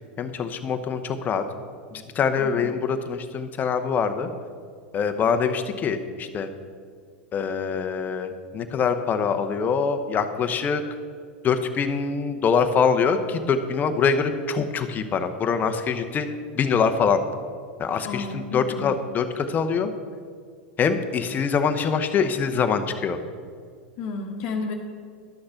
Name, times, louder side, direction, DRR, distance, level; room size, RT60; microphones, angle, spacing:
voice 1, 0.2-1.4 1.9-4.3 4.9-6.5 7.3-10.8 11.4-16.3 16.6-17.2 17.8-19.9 20.8-23.2, left 6 dB, 30° left, 8 dB, 0.9 m, -24 dB
voice 2, 18.0-18.9 24.0-24.7, left 3 dB, 50° left, 2 dB, 1.2 m, -31 dB
11.5 x 6.5 x 5.8 m, 2.1 s
hypercardioid pair, 100°, 6 cm